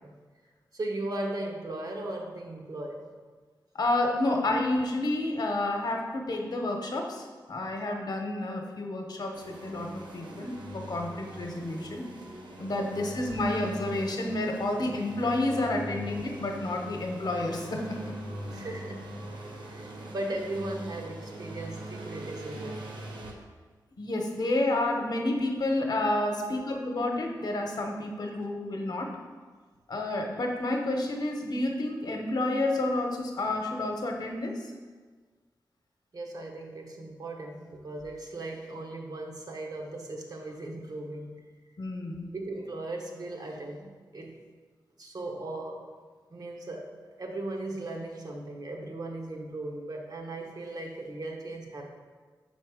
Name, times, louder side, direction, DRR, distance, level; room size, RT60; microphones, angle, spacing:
voice 1, 0.7-3.1 4.2-4.3 12.8-13.1 14.7-14.8 18.5-19.2 19.7-22.9 26.3-26.6 36.1-41.5 42.3-44.4 45.0-45.9 46.3-51.9, right 2 dB, 55° right, 1 dB, 0.9 m, -37 dB
voice 2, 3.7-12.0 12.6-18.1 24.0-29.1 29.9-34.6 41.8-42.3, left 2 dB, 60° left, 2 dB, 0.9 m, -30 dB
sound 1, 9.3-23.3, right 1 dB, 85° right, 0.9 m, -41 dB
5.9 x 4.2 x 4.9 m, 1.4 s
wide cardioid pair, 105°, 8 cm